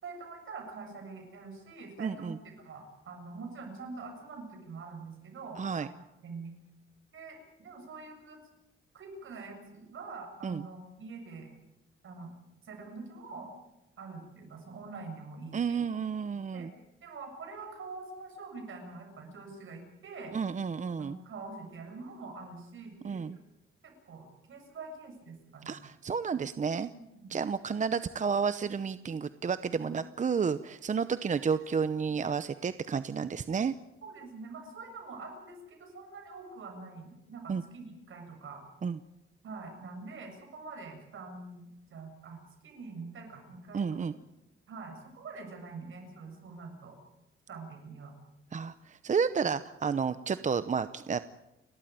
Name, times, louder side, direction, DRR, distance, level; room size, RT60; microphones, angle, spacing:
voice 1, 0.0-5.9 6.2-6.5 7.1-8.4 8.9-11.5 12.0-12.3 12.6-13.5 14.0-15.8 16.5-16.7 17.0-20.3 21.0-23.4 23.8-25.8 26.9-27.4 28.6-28.7 29.8-30.0 34.0-38.7 39.4-44.1 44.7-47.0 47.5-48.2, right 4 dB, 70° right, 3 dB, 7.3 m, -45 dB
voice 2, 2.0-2.4 5.6-5.9 10.4-10.6 15.5-16.7 20.3-21.2 23.0-23.4 25.7-26.9 27.3-33.7 37.5-37.6 38.8-39.0 43.7-44.1 48.5-51.2, right 6 dB, 35° right, 13 dB, 0.7 m, -31 dB
30.0 x 13.0 x 9.3 m, 0.96 s
cardioid pair, 120°, 21 cm